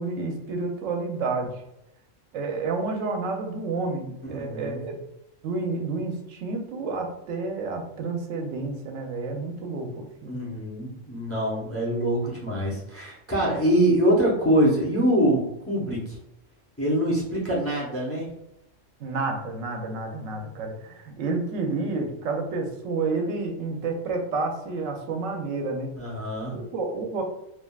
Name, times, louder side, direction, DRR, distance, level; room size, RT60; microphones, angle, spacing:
voice 1, 0.0-1.6 2.3-5.0 5.4-10.4 19.0-25.9 26.5-27.2, right 3 dB, 90° right, 3 dB, 1.0 m, -30 dB
voice 2, 4.2-4.8 10.3-16.2 16.8-18.2 26.0-26.6, right 1 dB, 15° left, -6 dB, 0.7 m, -24 dB
3.4 x 2.4 x 2.3 m, 0.84 s
omnidirectional pair, 1.3 m